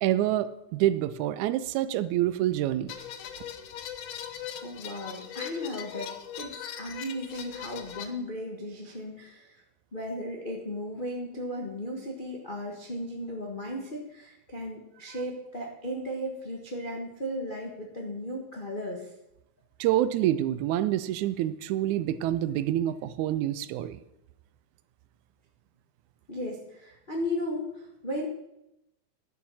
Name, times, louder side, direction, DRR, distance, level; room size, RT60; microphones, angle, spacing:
voice 1, 0.0-2.9 19.8-24.0, right 13 dB, 80° right, 14 dB, 1.9 m, -27 dB
sound 1, 2.9-8.1, left 9 dB, 80° left, 1.2 m, -40 dB
voice 2, 4.6-6.1 6.4-6.5 6.8-9.5 9.9-19.0 26.3-28.3, equal, 65° left, -1 dB, 0.5 m, -35 dB
11.0 x 7.2 x 6.2 m, 0.87 s
omnidirectional pair, 3.5 m